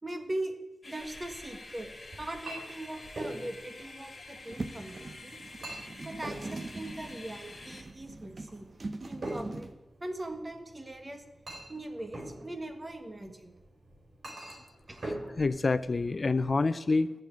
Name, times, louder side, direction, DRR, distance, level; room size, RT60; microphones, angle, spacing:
voice 1, 0.0-0.5 0.8-1.9 2.2-5.4 6.0-8.7 9.1-9.7 10.0-11.2 11.7-13.6 14.9-15.0, right 1 dB, 25° right, 6 dB, 1.5 m, -40 dB
sound 1, 0.8-7.8, left 2 dB, 25° left, 2.9 m, -48 dB
Chink clink, 1.0-16.5, right 1 dB, 60° right, 4.7 m, -45 dB
sound 2, 4.5-9.7, right 2 dB, 40° right, 1.0 m, -42 dB
voice 2, 15.0-17.1, left 3 dB, 45° left, 13 dB, 0.4 m, -28 dB
14.0 x 6.6 x 8.5 m, 1.0 s
wide cardioid pair, 105°, 0 cm